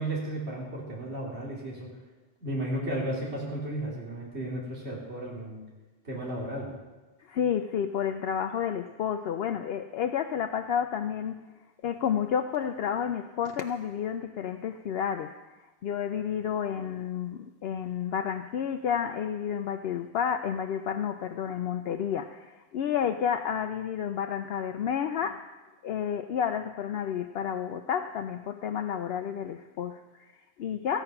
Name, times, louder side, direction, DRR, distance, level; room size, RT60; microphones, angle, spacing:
voice 1, 0.0-1.9 2.4-5.6 6.0-6.7, right 1 dB, 80° right, -4 dB, 2.9 m, -34 dB
voice 2, 7.2-11.4 11.8-15.5 15.8-25.5 25.8-31.0, left 8 dB, 70° left, 6 dB, 0.8 m, -31 dB
15.0 x 9.1 x 5.8 m, 1.2 s
omnidirectional pair, 1.1 m